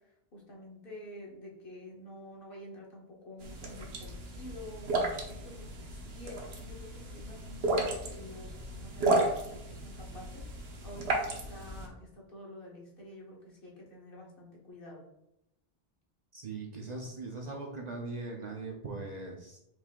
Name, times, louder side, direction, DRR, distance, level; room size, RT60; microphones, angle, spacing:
voice 1, 0.3-15.0, left 1 dB, 60° left, -3 dB, 1.4 m, -49 dB
sound 1, 3.4-11.9, right 2 dB, 70° right, 1.0 m, -34 dB
voice 2, 16.3-19.6, right 3 dB, 50° right, 0 dB, 0.6 m, -40 dB
4.9 x 2.7 x 3.5 m, 0.83 s
omnidirectional pair, 1.1 m